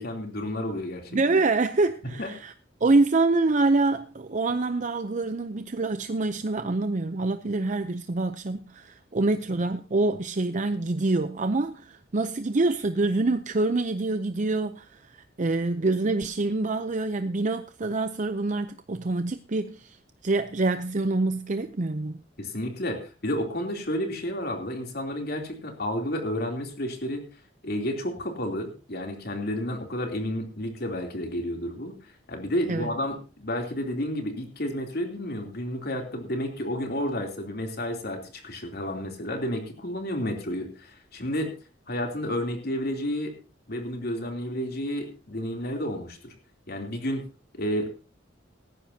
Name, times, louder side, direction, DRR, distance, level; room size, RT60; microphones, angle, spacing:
voice 1, 0.0-1.1 2.2-2.3 22.4-27.2 27.6-32.0 32.3-41.5 41.9-43.3 43.7-46.3 46.7-47.3 47.5-47.9, equal, 55° left, 3.1 m, -31 dB
voice 2, 1.1-2.5 2.8-20.0 20.2-22.2 32.7-32.9, right 3 dB, 40° right, 0.6 m, -26 dB
18.0 x 14.5 x 2.8 m
head